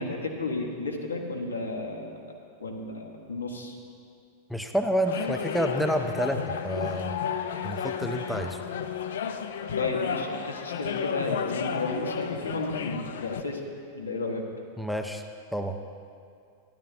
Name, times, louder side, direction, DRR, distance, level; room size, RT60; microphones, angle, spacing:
voice 1, 0.0-2.1 2.6-3.8 9.8-13.6 13.9-14.4, left 3 dB, 75° left, 1 dB, 1.1 m, -32 dB
voice 2, 4.5-7.2 7.6-8.6 14.8-15.2 15.5-15.8, equal, ahead, 5 dB, 0.4 m, -29 dB
sound 1, 5.1-13.4, left 7 dB, 60° left, 0.4 m, -33 dB
12.0 x 11.0 x 2.7 m, 2.3 s
figure-of-eight pair, 90°, 0 cm